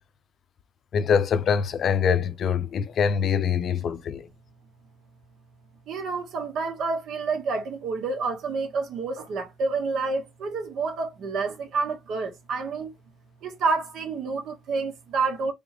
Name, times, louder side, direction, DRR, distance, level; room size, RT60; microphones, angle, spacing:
voice 1, 0.9-4.3, left 7 dB, 50° left, 0.5 m, -24 dB
voice 2, 5.9-12.9 13.4-15.5, right 4 dB, 70° right, 1.3 m, -29 dB
3.9 x 3.5 x 3.0 m
cardioid pair, 170°, 0 cm